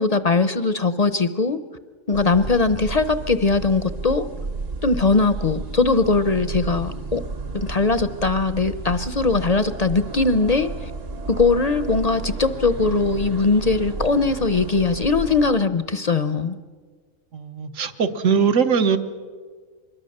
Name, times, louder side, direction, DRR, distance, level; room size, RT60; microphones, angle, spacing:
voice 1, 0.0-1.6 2.1-4.3 4.8-7.2 7.5-10.9 11.3-16.6, left 3 dB, 40° left, 12 dB, 0.6 m, -20 dB
sound 1, 2.1-15.5, right 3 dB, 50° right, 1.3 m, -32 dB
voice 2, 17.3-19.0, right 6 dB, 70° right, 8 dB, 1.5 m, -21 dB
24.5 x 21.5 x 6.6 m, 1.5 s
omnidirectional pair, 1.4 m